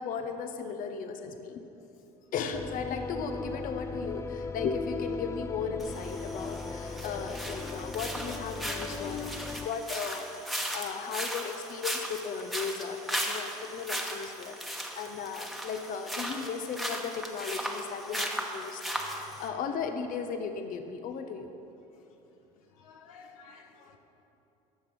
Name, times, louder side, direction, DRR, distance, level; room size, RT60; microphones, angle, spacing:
voice 1, 0.0-1.6 2.3-18.8 19.1-21.5, left 6 dB, 50° left, 7 dB, 0.8 m, -36 dB
sound 1, 2.5-9.7, left 3 dB, 15° left, 0.4 m, -37 dB
sound 2, 5.8-19.5, equal, ahead, 1.2 m, -37 dB
voice 2, 22.6-24.0, left 5 dB, 85° left, 4 dB, 0.9 m, -54 dB
13.5 x 6.0 x 5.1 m, 2.9 s
supercardioid pair, 80°, 17 cm